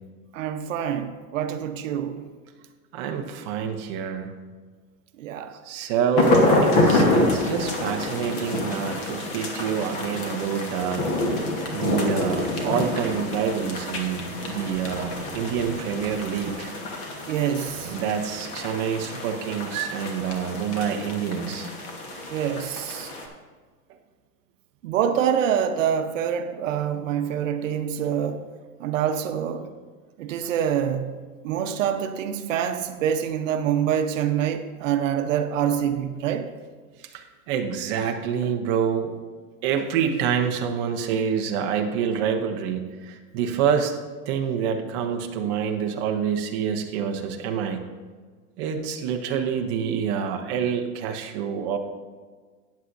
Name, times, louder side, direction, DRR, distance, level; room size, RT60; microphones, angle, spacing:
voice 1, 0.3-2.2 5.2-5.6 17.3-17.9 22.3-23.1 24.8-28.4 28.8-29.7 30.2-36.5, right 9 dB, 55° right, 0.9 m, -26 dB
voice 2, 2.9-4.3 5.7-11.0 11.3-16.7 17.8-21.7 29.6-29.7 37.1-39.1 39.6-43.9 44.3-47.8 48.6-51.8, right 7 dB, 20° right, 0.5 m, -27 dB
sound 1, 6.2-23.3, left 2 dB, 30° left, 1.2 m, -27 dB
13.5 x 9.5 x 2.6 m
supercardioid pair, 165°, 45 cm